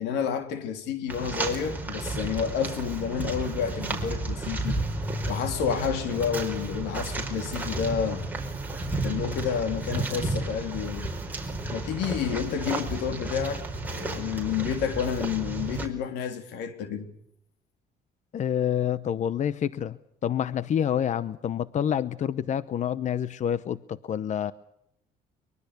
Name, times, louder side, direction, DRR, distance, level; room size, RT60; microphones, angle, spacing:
voice 1, 0.0-4.8 5.3-8.3 9.0-11.1 11.7-17.1, left 7 dB, 85° left, 3.5 m, -30 dB
sound 1, 1.1-15.9, right 2 dB, 10° right, 4.8 m, -32 dB
voice 2, 18.3-20.0 20.2-24.5, left 9 dB, 45° left, 0.9 m, -27 dB
23.5 x 22.5 x 6.8 m
cardioid pair, 110°, 17 cm